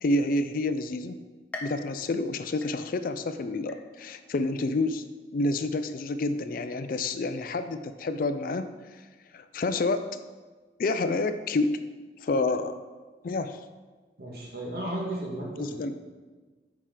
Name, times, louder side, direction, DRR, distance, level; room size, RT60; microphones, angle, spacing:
voice 1, 0.0-1.2 1.6-5.0 5.3-8.7 8.9-9.0 9.3-10.0 10.8-11.8 12.2-12.8 13.2-13.6 15.6-15.9, left 2 dB, 50° left, 10 dB, 0.4 m, -28 dB
sound 1, 1.5-3.2 3.7-4.3 4.8-4.9 5.8-5.9, left 2 dB, 10° left, 0.7 m, -44 dB
voice 2, 14.2-15.9, right 1 dB, 60° right, -2 dB, 1.7 m, -34 dB
8.5 x 4.7 x 3.8 m, 1.4 s
head